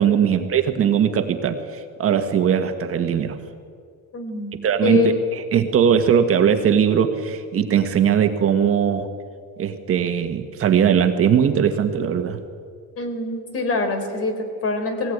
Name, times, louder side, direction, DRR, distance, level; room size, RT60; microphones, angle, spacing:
voice 1, 0.0-3.4 4.6-5.0 5.5-9.1 9.6-12.4, right 8 dB, 45° right, 7 dB, 1.6 m, -19 dB
voice 2, 4.1-5.2 13.0-15.1, left 3 dB, 45° left, 6 dB, 3.9 m, -25 dB
19.5 x 18.5 x 9.5 m, 2.1 s
cardioid pair, 155°, 32 cm